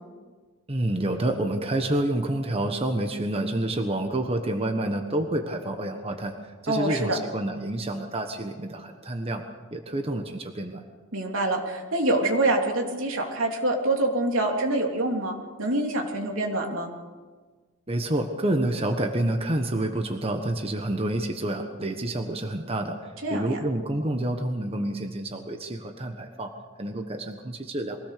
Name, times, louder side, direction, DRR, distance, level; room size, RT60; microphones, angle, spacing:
voice 1, 0.7-6.3 6.6-9.4 9.7-10.8 17.9-23.0 23.3-26.5 26.8-28.0, right 1 dB, 30° right, 5 dB, 1.3 m, -28 dB
voice 2, 6.7-7.2 11.1-16.9 23.2-23.6, right 2 dB, 80° right, 1 dB, 3.2 m, -26 dB
23.0 x 17.5 x 6.8 m, 1.4 s
head